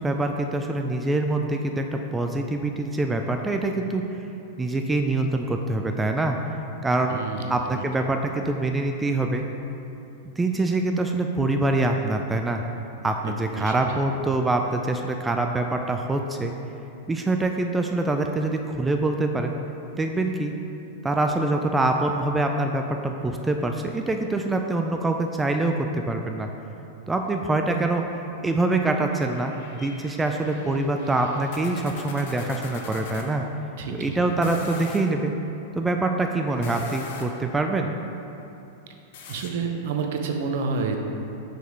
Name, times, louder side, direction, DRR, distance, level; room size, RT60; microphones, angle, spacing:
voice 1, 0.0-4.3 4.6-6.4 6.8-7.2 7.5-9.5 10.4-12.6 13.0-16.5 17.1-19.5 20.0-20.5 21.0-26.5 27.1-33.4 33.9-35.3 35.8-37.9, right 2 dB, 10° right, 4 dB, 0.3 m, -25 dB
voice 2, 7.1-7.8 13.2-13.7 33.8-34.2 39.3-41.0, right 5 dB, 60° right, 3 dB, 0.6 m, -29 dB
sound 1, 29.1-33.3 34.3-35.1 36.5-37.5 39.1-39.5, left 4 dB, 60° left, 0.7 m, -40 dB
5.8 x 4.9 x 3.4 m, 2.8 s
hypercardioid pair, 100°, 0 cm